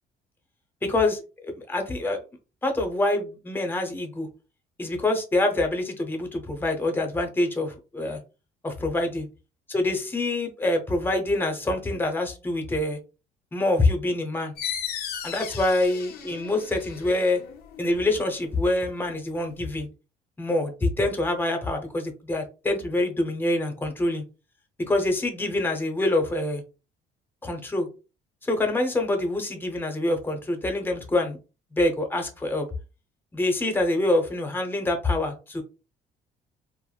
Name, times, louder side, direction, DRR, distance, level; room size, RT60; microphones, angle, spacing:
voice 1, 0.8-2.2 2.6-4.3 4.8-8.2 8.6-9.3 9.7-13.0 13.5-14.5 15.2-17.4 17.8-19.9 20.4-24.2 24.9-26.6 27.4-27.9 28.4-31.4 31.7-32.7 33.3-35.6, left 2 dB, 10° left, 3 dB, 0.7 m, -25 dB
sound 1, 14.6-19.8, left 9 dB, 70° left, 0.6 m, -37 dB
3.3 x 2.0 x 2.3 m, 0.31 s
cardioid pair, 110°, 17 cm